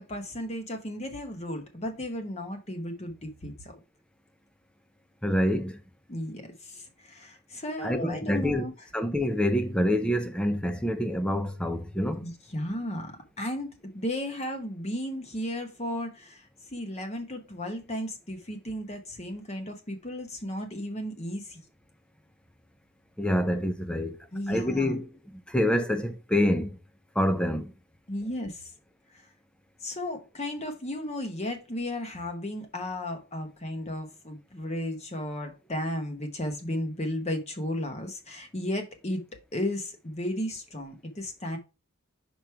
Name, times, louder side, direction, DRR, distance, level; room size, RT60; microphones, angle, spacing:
voice 1, 0.0-3.8 6.1-8.9 12.2-21.6 24.3-25.0 28.1-28.7 29.1-29.2 29.8-39.2 39.5-41.6, left 1 dB, 30° left, 1.1 m, -34 dB
voice 2, 5.2-5.8 7.8-8.6 8.9-12.2 23.2-26.8 27.2-27.7, left 1 dB, 5° left, 0.6 m, -27 dB
5.1 x 4.9 x 4.5 m
head